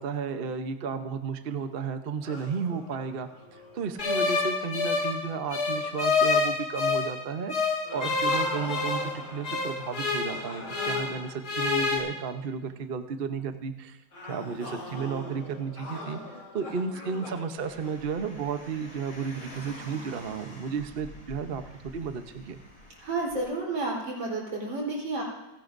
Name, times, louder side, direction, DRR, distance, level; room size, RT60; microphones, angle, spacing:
voice 1, 0.0-14.0 14.3-22.6, right 6 dB, 45° right, 7 dB, 0.7 m, -33 dB
sound 1, 2.2-5.3 5.7-6.0 7.8-12.4 14.1-18.7, left 1 dB, 80° left, 6.8 m, -43 dB
sound 2, 4.0-7.2 7.5-11.2 11.4-12.0, left 4 dB, 55° left, 2.6 m, -27 dB
Car, 17.6-23.4, left 1 dB, 25° left, 5.5 m, -47 dB
voice 2, 23.0-25.2, right 2 dB, 75° right, -2 dB, 4.7 m, -31 dB
30.0 x 11.0 x 2.6 m, 1.0 s
omnidirectional pair, 2.1 m